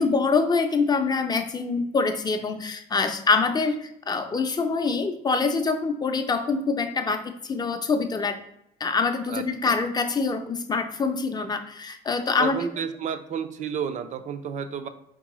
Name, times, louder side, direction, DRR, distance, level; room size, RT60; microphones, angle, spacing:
voice 1, 0.0-8.4 8.8-12.6, left 4 dB, 25° left, 7 dB, 0.5 m, -25 dB
voice 2, 9.3-9.8 12.4-14.9, right 7 dB, 45° right, 9 dB, 0.5 m, -31 dB
4.4 x 3.7 x 3.0 m, 0.75 s
cardioid pair, 110°, 17 cm